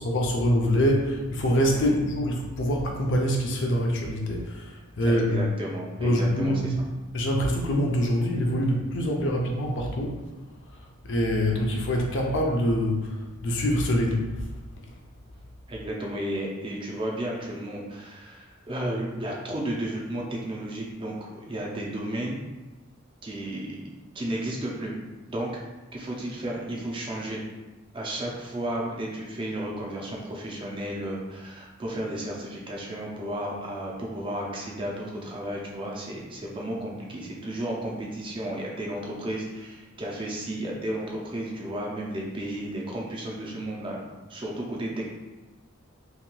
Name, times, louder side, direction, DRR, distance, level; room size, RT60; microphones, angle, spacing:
voice 1, 0.0-5.4 6.0-6.7 7.1-10.2 11.0-13.1 13.4-14.3, equal, 55° left, 0 dB, 0.5 m, -25 dB
voice 2, 5.0-6.7 15.7-22.4 23.2-23.8 24.1-24.9 25.3-25.6 25.9-27.4 27.9-44.0 44.3-45.1, right 1 dB, 25° right, -2 dB, 0.4 m, -33 dB
2.9 x 2.8 x 2.2 m, 1.2 s
head